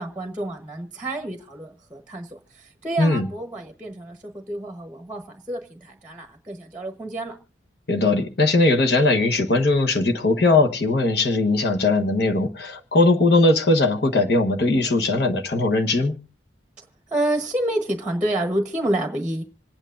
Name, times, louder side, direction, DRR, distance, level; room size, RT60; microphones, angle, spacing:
voice 1, 0.0-5.2 5.5-7.4 17.1-19.4, right 1 dB, 5° right, 1.1 m, -28 dB
voice 2, 7.9-16.2, left 2 dB, 60° left, 1.2 m, -19 dB
27.0 x 9.1 x 2.5 m
head